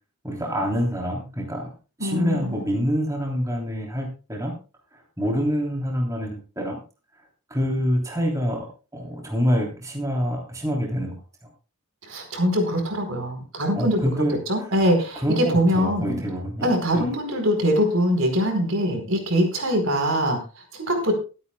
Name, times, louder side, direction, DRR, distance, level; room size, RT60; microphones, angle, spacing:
voice 1, 0.2-1.7 2.0-4.5 5.2-6.8 7.5-11.2 13.7-14.7 15.1-16.7 16.9-17.1, equal, 15° right, -1 dB, 3.2 m, -26 dB
voice 2, 2.0-2.6 12.1-16.2 16.6-20.4 20.7-21.1, equal, 65° right, 4 dB, 4.6 m, -23 dB
23.0 x 9.5 x 2.3 m, 0.33 s
head